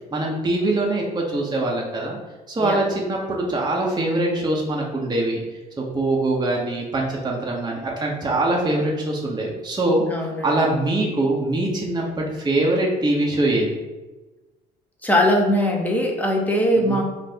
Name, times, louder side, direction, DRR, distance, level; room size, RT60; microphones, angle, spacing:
voice 1, 0.1-2.2 2.5-5.4 5.8-10.0 10.4-13.8 16.8-17.0, right 2 dB, 20° right, -2 dB, 0.9 m, -23 dB
voice 2, 10.1-10.6 15.0-17.0, equal, 10° left, 0 dB, 1.0 m, -21 dB
4.2 x 2.5 x 3.5 m, 1.2 s
hypercardioid pair, 60°, 21 cm